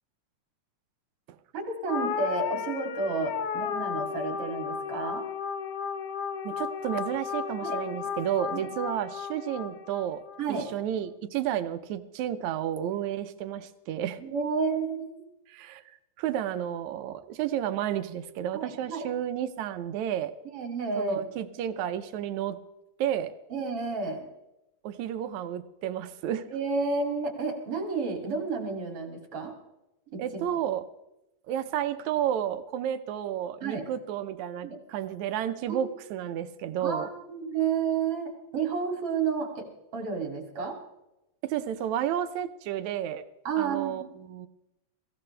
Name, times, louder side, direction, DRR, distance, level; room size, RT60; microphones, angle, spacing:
voice 1, 1.5-5.3 7.6-7.8 8.5-8.7 10.4-10.7 14.2-15.1 18.5-19.1 20.5-21.2 23.5-24.2 26.5-29.5 30.1-30.5 33.6-33.8 34.6-34.8 35.7-35.8 36.8-40.8 43.4-44.0, right 5 dB, 50° right, 3 dB, 3.4 m, -31 dB
sound 1, 1.9-10.5, left 7 dB, 65° left, 1.6 m, -34 dB
voice 2, 6.4-14.2 15.5-20.3 21.0-22.6 23.0-23.3 24.8-26.5 30.2-30.8 31.5-37.1 41.4-43.2 43.6-44.5, right 10 dB, 75° right, 11 dB, 2.0 m, -31 dB
22.0 x 16.0 x 3.3 m, 0.91 s
omnidirectional pair, 3.5 m